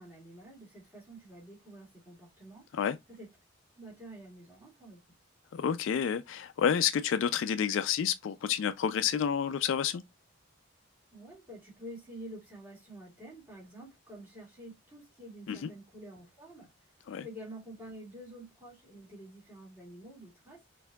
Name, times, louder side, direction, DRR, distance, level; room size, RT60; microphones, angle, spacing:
voice 1, 0.0-2.7 3.1-3.3 3.7-5.0 11.1-16.9 17.2-20.6, right 1 dB, 10° right, 2.0 m, -48 dB
voice 2, 5.5-10.0 15.5-15.7 17.1-17.2, left 8 dB, 65° left, 0.3 m, -29 dB
4.4 x 2.6 x 2.2 m
head